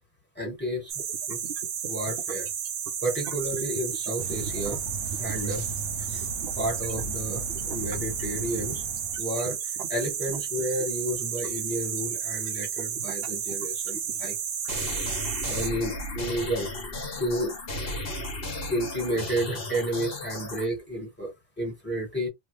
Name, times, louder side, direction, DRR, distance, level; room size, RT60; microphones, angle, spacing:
voice 1, 0.3-0.9 1.3-1.4 1.9-2.5 3.0-4.8 5.2-5.6 6.1-6.3 6.6-8.8 9.2-9.6 9.9-14.4 15.5-16.7 17.2-17.5 18.7-22.3, right 1 dB, 10° left, 1.5 m, -31 dB
sound 1, 0.9-15.7, right 8 dB, 60° right, 0.7 m, -32 dB
sound 2, 4.2-9.2, right 2 dB, 85° right, 1.0 m, -37 dB
sound 3, 14.6-20.7, left 2 dB, 50° left, 1.2 m, -34 dB
3.0 x 2.3 x 3.2 m
omnidirectional pair, 1.3 m